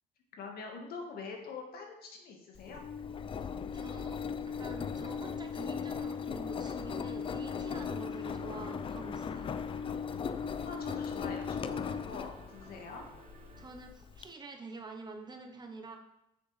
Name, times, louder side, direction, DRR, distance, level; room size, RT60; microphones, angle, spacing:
voice 1, 0.3-2.8 10.6-13.0, left 4 dB, 65° left, 2 dB, 1.7 m, -44 dB
Engine, 2.6-14.3, left 6 dB, 30° left, 0.4 m, -38 dB
voice 2, 3.4-4.2 4.5-9.5 13.6-16.0, right 3 dB, 25° right, 4 dB, 0.9 m, -47 dB
sound 1, 6.9-13.7, right 3 dB, 45° right, 1.4 m, -55 dB
7.8 x 6.6 x 3.3 m, 0.85 s
cardioid pair, 110°, 17 cm